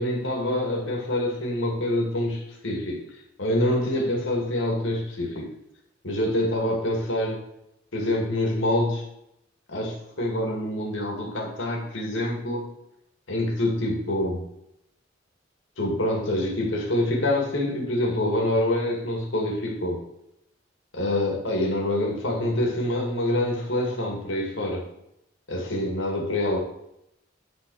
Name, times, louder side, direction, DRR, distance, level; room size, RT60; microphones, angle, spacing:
voice 1, 0.0-3.0 3.4-5.5 6.0-7.4 7.9-9.0 9.7-12.6 13.3-14.4 15.8-20.0 20.9-24.8 25.5-26.6, left 1 dB, 75° left, 0 dB, 2.1 m, -26 dB
9.4 x 4.1 x 6.3 m, 0.81 s
head